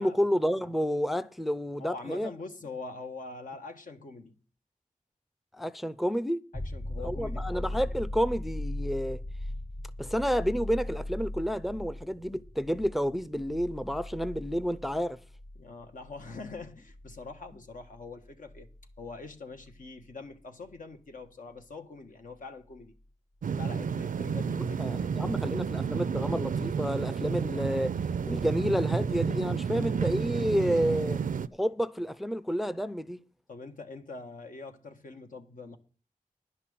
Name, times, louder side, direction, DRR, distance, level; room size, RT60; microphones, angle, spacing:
voice 1, 0.0-2.3 5.5-6.4 7.0-9.2 10.0-15.2 24.6-27.9 28.3-31.2 31.6-33.2, equal, ahead, 0.5 m, -30 dB
voice 2, 1.8-4.3 6.5-7.5 15.5-18.7 19.0-22.9 23.5-25.1 30.6-30.7 33.5-35.8, left 3 dB, 75° left, 1.3 m, -44 dB
sound 1, 6.5-20.0 22.8-22.9, left 1 dB, 25° left, 1.1 m, -39 dB
sound 2, 23.4-31.5, right 6 dB, 85° right, 0.5 m, -31 dB
10.5 x 5.8 x 8.5 m
wide cardioid pair, 85°, 14 cm